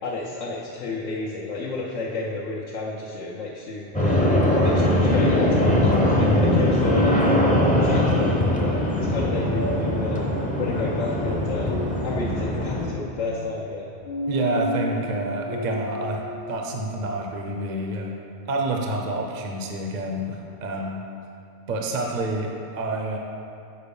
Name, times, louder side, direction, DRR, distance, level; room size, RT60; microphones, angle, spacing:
voice 1, 0.0-4.2 4.6-7.4 7.8-10.2 10.6-11.7 12.0-13.9, left 3 dB, 75° left, -5 dB, 1.1 m, -31 dB
sound 1, 3.9-12.9, left 1 dB, 10° left, 0.5 m, -21 dB
sound 2, 6.8-17.1, left 1 dB, 60° left, 0.6 m, -33 dB
voice 2, 14.3-16.2 16.5-18.1 18.5-21.0 21.7-23.2, right 2 dB, 45° right, 1 dB, 0.7 m, -28 dB
6.8 x 4.4 x 5.4 m, 2.8 s
omnidirectional pair, 1.3 m